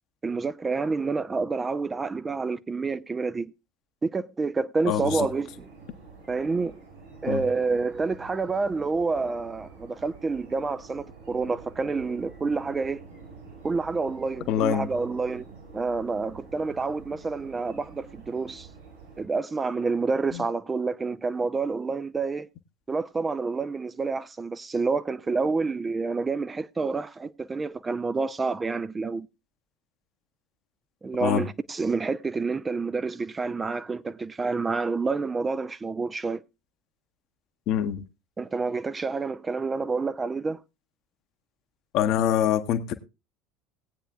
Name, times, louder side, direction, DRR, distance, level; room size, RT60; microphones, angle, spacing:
voice 1, 0.2-3.5 4.0-5.5 6.3-6.8 7.2-13.0 13.6-15.5 15.7-18.7 19.2-22.5 22.9-29.3 31.0-36.4 38.4-40.6, right 4 dB, 20° right, 0.5 m, -28 dB
voice 2, 4.9-5.3 7.3-7.4 14.5-14.9 31.2-31.4 37.7-38.0 41.9-42.9, left 10 dB, 50° left, 1.0 m, -24 dB
sound 1, 4.9-19.2, right 4 dB, 70° right, 6.6 m, -48 dB
19.0 x 8.9 x 2.4 m
figure-of-eight pair, 70°, 0 cm